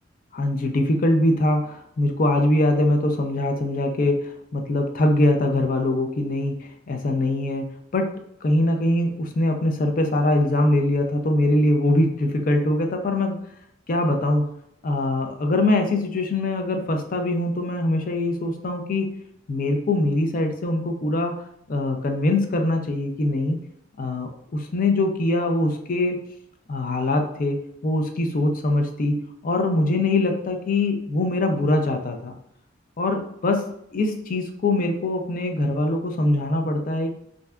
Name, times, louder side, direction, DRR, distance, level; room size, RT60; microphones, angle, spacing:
voice 1, 0.3-7.6 7.9-8.1 8.4-13.4 13.9-14.4 14.8-19.1 19.5-21.3 21.7-23.6 24.0-26.2 26.7-27.6 27.8-29.1 29.4-32.4 33.0-33.6 33.9-37.1, left 1 dB, 45° left, 4 dB, 0.4 m, -22 dB
3.2 x 2.6 x 2.3 m, 0.76 s
head